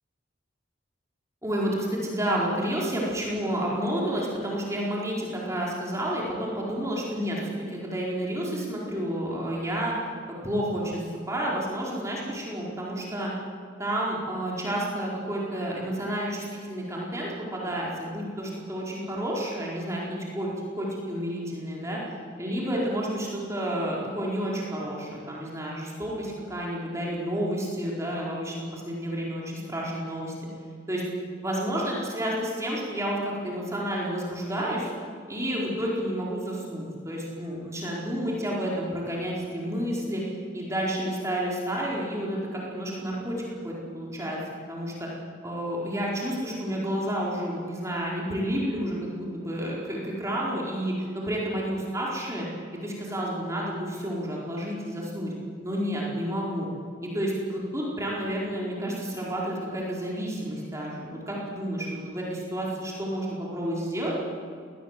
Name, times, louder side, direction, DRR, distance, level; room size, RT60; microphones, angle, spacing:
voice 1, 1.4-9.9 10.4-13.3 13.8-20.5 20.8-22.0 22.4-30.3 30.9-31.0 31.4-34.9 35.3-40.2 40.5-44.4 44.7-45.1 45.4-52.5 52.8-55.3 55.6-56.7 57.0-64.1, equal, 15° right, -4 dB, 4.5 m, -30 dB
21.0 x 19.5 x 7.6 m, 2.2 s
head